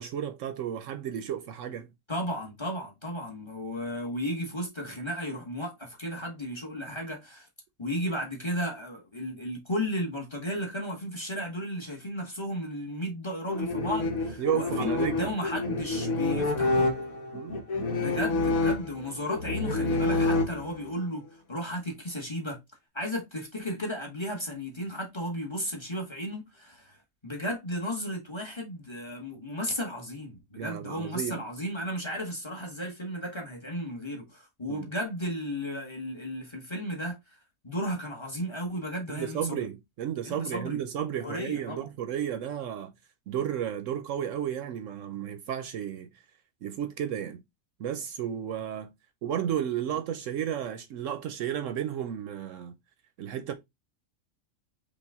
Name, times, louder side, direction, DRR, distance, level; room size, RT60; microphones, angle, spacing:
voice 1, 0.0-1.9 14.4-15.3 17.3-17.7 30.6-31.4 34.7-34.9 39.1-42.9 43.3-46.1 46.6-47.4 47.8-48.9 49.2-52.8 53.2-53.5, right 9 dB, 70° right, 0.9 m, -33 dB
voice 2, 2.1-7.5 7.8-16.9 17.9-22.6 22.9-27.0 27.2-37.4 37.6-39.6 40.2-40.8 41.2-41.9, equal, 20° left, 1.1 m, -34 dB
sound 1, 13.5-21.0, left 2 dB, 75° left, 1.4 m, -28 dB
5.3 x 2.4 x 3.5 m
omnidirectional pair, 1.5 m